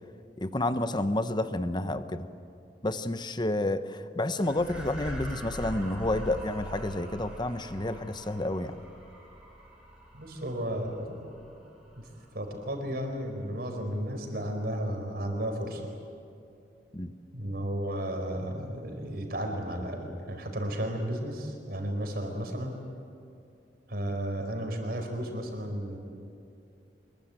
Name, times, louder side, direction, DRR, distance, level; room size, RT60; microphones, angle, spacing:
voice 1, 0.4-2.3 2.8-8.8 16.9-17.1, left 1 dB, 25° left, 11 dB, 1.0 m, -30 dB
sound 1, 4.4-13.0, equal, 5° right, 5.1 m, -43 dB
voice 2, 10.1-11.2 12.0-15.9 17.3-22.8 23.9-26.0, equal, 55° right, 4 dB, 4.8 m, -33 dB
25.0 x 22.5 x 9.1 m, 2.6 s
head